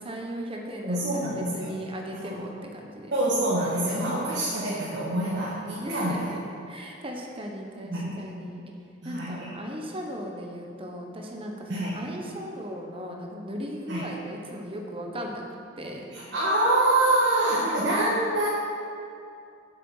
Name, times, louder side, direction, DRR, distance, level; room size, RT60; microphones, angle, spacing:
voice 1, 0.0-3.1 5.8-8.6 9.0-15.4 15.8-16.3 17.4-18.0, equal, 25° right, 1 dB, 1.0 m, -37 dB
voice 2, 0.8-1.7 2.2-2.4 3.1-6.3 7.9-8.3 9.0-9.5 11.7-12.0 13.9-14.1 16.1-18.5, right 1 dB, 55° right, -7 dB, 1.5 m, -26 dB
7.7 x 6.7 x 6.4 m, 2.5 s
head